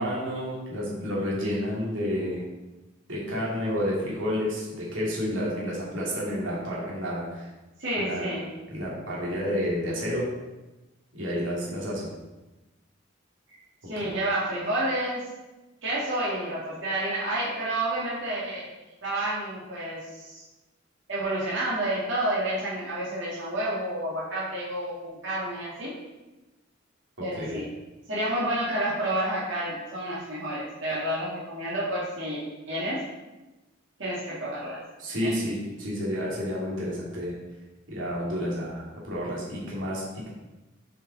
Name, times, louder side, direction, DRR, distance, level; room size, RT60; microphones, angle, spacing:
voice 1, 0.0-2.4 3.1-7.5 8.0-8.2 8.7-10.2 11.1-12.1 14.0-14.1 27.2-27.6 35.0-37.3 37.9-40.3, equal, 85° right, -5 dB, 2.5 m, -30 dB
voice 2, 7.8-8.4 13.9-15.2 15.8-18.7 19.0-20.4 21.1-25.9 27.2-27.7 28.1-33.0 34.0-34.8 35.1-35.3, right 1 dB, 70° right, -8 dB, 2.2 m, -30 dB
8.0 x 5.1 x 4.1 m, 1.1 s
head